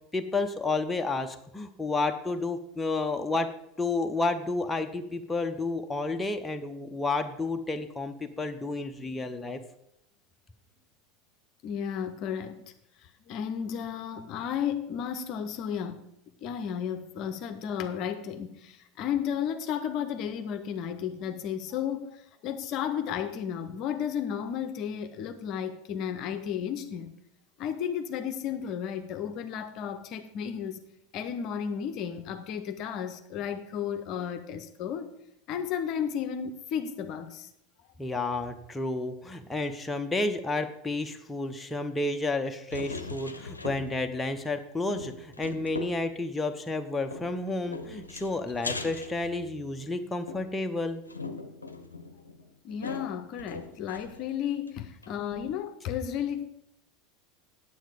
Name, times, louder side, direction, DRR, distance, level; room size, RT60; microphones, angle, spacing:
voice 1, 0.1-3.5 3.8-9.6 38.0-51.0, left 3 dB, 15° left, 5 dB, 0.8 m, -31 dB
voice 2, 11.6-12.7 13.0-16.1 16.4-27.1 27.6-30.8 31.1-35.1 35.5-37.5 52.6-56.4, left 8 dB, 45° left, 9 dB, 0.7 m, -33 dB
sound 1, 42.7-44.2 44.4-44.5 44.9-46.1 47.1-49.8 50.3-54.3 54.7-54.8 55.0-55.1, left 3 dB, 85° left, 0.7 m, -40 dB
9.2 x 7.8 x 5.0 m, 0.77 s
figure-of-eight pair, 75°, 0 cm